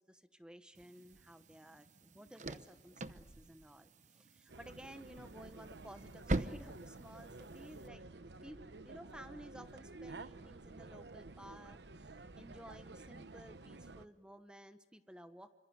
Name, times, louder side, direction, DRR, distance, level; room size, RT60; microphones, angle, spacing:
voice 1, 0.0-8.0 8.4-15.5, equal, 5° right, 9 dB, 1.0 m, -55 dB
sound 1, 0.7-7.9, right 2 dB, 45° right, 0.9 m, -44 dB
sound 2, 4.5-14.1, right 3 dB, 70° right, 0.9 m, -52 dB
27.5 x 25.5 x 8.1 m, 1.2 s
head